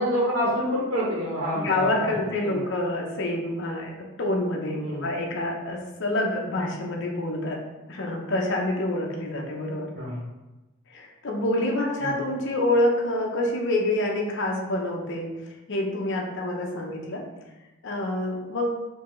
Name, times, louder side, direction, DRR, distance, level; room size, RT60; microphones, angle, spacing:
voice 1, 0.0-2.1 2.4-2.6 4.7-5.1 9.9-10.2 12.0-12.1, equal, 85° right, -6 dB, 1.2 m, -27 dB
voice 2, 1.6-7.6 7.9-9.9 10.9-15.4 15.7-17.2 17.8-18.8, left 1 dB, 55° left, 0 dB, 0.7 m, -27 dB
4.5 x 2.7 x 3.1 m, 1.1 s
head